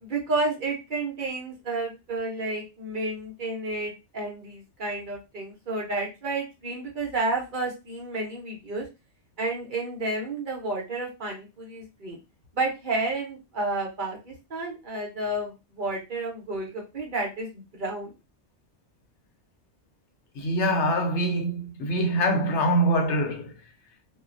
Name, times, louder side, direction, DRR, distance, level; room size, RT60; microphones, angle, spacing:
voice 1, 0.0-8.8 9.4-12.2 12.5-18.1, right 2 dB, 50° right, 0.8 m, -31 dB
voice 2, 20.3-23.5, right 1 dB, 80° left, 1.0 m, -24 dB
2.3 x 2.1 x 2.5 m
omnidirectional pair, 1.2 m